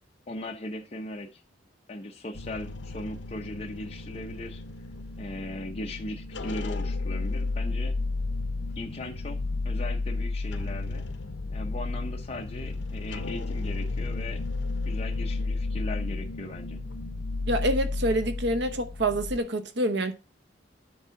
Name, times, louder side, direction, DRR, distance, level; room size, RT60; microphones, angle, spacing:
voice 1, 0.3-1.4 1.9-4.6 5.2-8.0 8.8-9.4 9.6-11.0 11.5-14.4 14.9-16.8, left 1 dB, 35° left, 0.7 m, -38 dB
sound 1, 2.3-19.4, left 3 dB, 65° left, 0.8 m, -32 dB
voice 2, 17.5-20.1, right 1 dB, 65° right, 0.9 m, -27 dB
9.5 x 3.7 x 5.6 m
head